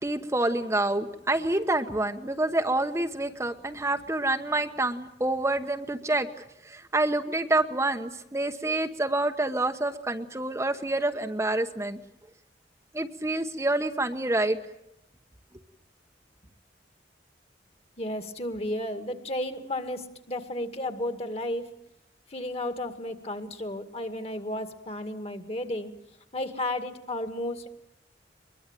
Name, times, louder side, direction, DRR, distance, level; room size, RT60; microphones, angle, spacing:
voice 1, 0.0-12.0 12.9-14.6, right 2 dB, 15° right, 6 dB, 1.0 m, -27 dB
voice 2, 18.0-21.7 22.3-25.9 26.3-27.7, left 1 dB, 35° left, 9 dB, 2.2 m, -33 dB
22.5 x 22.5 x 9.0 m, 0.81 s
head